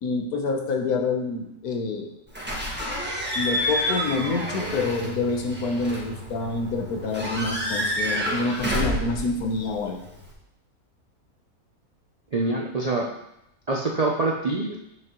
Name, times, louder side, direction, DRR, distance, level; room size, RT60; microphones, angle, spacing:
voice 1, 0.0-2.1 3.3-10.0, left 3 dB, 80° left, 3 dB, 1.5 m, -27 dB
Slam / Squeak / Alarm, 2.3-10.3, equal, 5° right, 1.2 m, -29 dB
voice 2, 12.3-13.1 13.7-14.8, right 3 dB, 55° right, -2 dB, 0.4 m, -25 dB
7.5 x 6.3 x 3.0 m, 0.83 s
omnidirectional pair, 1.6 m